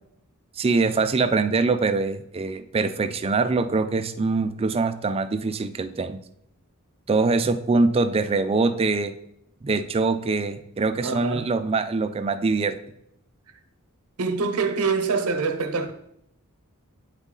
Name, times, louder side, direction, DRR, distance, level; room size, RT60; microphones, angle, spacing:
voice 1, 0.6-6.2 7.1-9.1 9.6-12.8, right 3 dB, 25° right, 0.4 m, -23 dB
voice 2, 11.0-11.5 14.2-15.9, right 4 dB, 80° right, 0.8 m, -25 dB
9.0 x 4.1 x 3.7 m
head